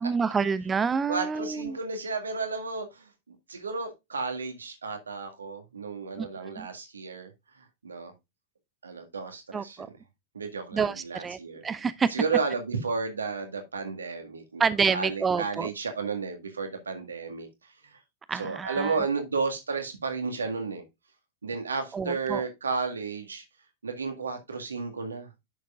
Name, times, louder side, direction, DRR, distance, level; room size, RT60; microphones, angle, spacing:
voice 1, 0.0-1.8 6.2-6.3 6.6-6.7 9.5-9.9 10.7-12.1 14.6-15.7 18.3-18.9 21.9-22.4, right 5 dB, 20° right, 0.4 m, -28 dB
voice 2, 1.1-3.1 3.5-7.3 7.8-8.1 8.8-9.9 10.3-11.6 12.1-14.6 14.9-17.5 17.8-18.0 18.3-20.8 21.4-23.4 23.8-25.3, right 4 dB, 75° right, 1.8 m, -32 dB
10.0 x 6.6 x 2.4 m
figure-of-eight pair, 90°, 0 cm